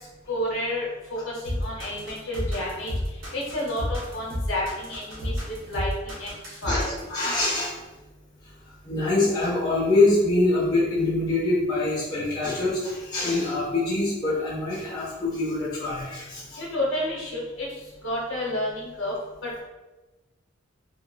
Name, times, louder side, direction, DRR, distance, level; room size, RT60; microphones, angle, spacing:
voice 1, 0.3-2.9 3.3-5.3 5.7-6.3 6.6-7.0 16.6-17.7 18.0-19.1 19.4-19.6, left 1 dB, 75° left, -4 dB, 0.8 m, -30 dB
sound 1, 1.4-7.1, equal, 80° right, 0.8 m, -30 dB
voice 2, 7.1-7.7 8.8-16.6, left 2 dB, 20° left, -7 dB, 0.6 m, -24 dB
2.9 x 2.3 x 2.2 m, 1.1 s
head